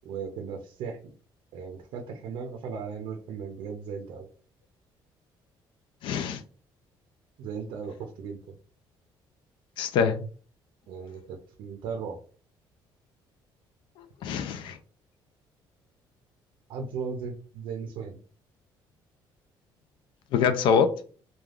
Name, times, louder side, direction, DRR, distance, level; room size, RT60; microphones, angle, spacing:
voice 1, 0.0-1.1 1.5-4.3 7.4-8.4 10.9-12.2 16.7-18.2, right 6 dB, 80° right, 0.5 m, -37 dB
voice 2, 6.0-6.4 9.8-10.2 14.2-14.8 20.3-21.0, left 6 dB, 70° left, 0.4 m, -24 dB
3.3 x 2.3 x 2.4 m
cardioid pair, 165°, 9 cm